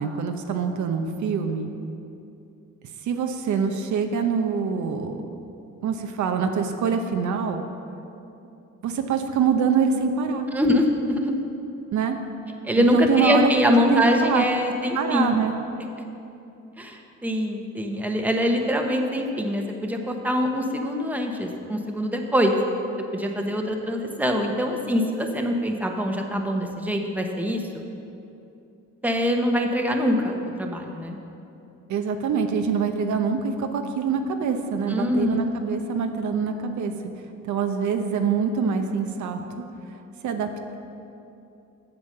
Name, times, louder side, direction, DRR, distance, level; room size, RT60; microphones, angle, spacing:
voice 1, 0.0-1.7 3.0-5.2 5.8-7.6 8.8-10.5 11.9-12.2 12.8-14.4 14.9-15.6 31.9-36.9 37.4-39.6 40.2-40.5, right 6 dB, 70° right, 5 dB, 0.8 m, -25 dB
voice 2, 10.5-11.3 12.6-15.3 16.8-22.6 23.1-27.6 29.0-31.2 34.9-35.5, left 1 dB, 5° right, 2 dB, 1.0 m, -24 dB
8.3 x 7.2 x 6.6 m, 2.8 s
cardioid pair, 90°, 30 cm